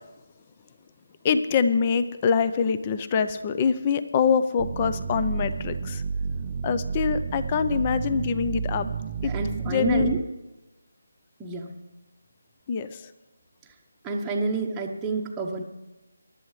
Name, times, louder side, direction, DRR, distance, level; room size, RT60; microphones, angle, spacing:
voice 1, 1.2-6.0 6.6-8.9 9.2-9.3 9.7-10.1 12.7-13.0, left 6 dB, 25° left, 13 dB, 0.7 m, -24 dB
sound 1, 4.6-10.2, right 5 dB, 30° right, 0.6 m, -31 dB
voice 2, 9.2-10.2 11.4-11.8 14.0-15.6, right 4 dB, 10° right, -2 dB, 1.0 m, -29 dB
24.5 x 11.5 x 3.2 m, 1.1 s
figure-of-eight pair, 160°, 0 cm